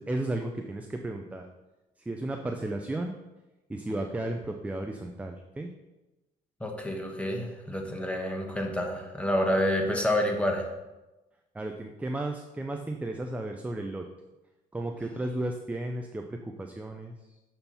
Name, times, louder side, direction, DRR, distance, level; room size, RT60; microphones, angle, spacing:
voice 1, 0.0-1.5 2.1-3.1 3.7-5.7 11.5-14.1 14.7-17.4, right 1 dB, 10° right, 4 dB, 0.5 m, -34 dB
voice 2, 6.6-10.7, left 1 dB, 5° left, 2 dB, 1.2 m, -28 dB
6.8 x 4.4 x 5.5 m, 1.0 s
cardioid pair, 110°, 17 cm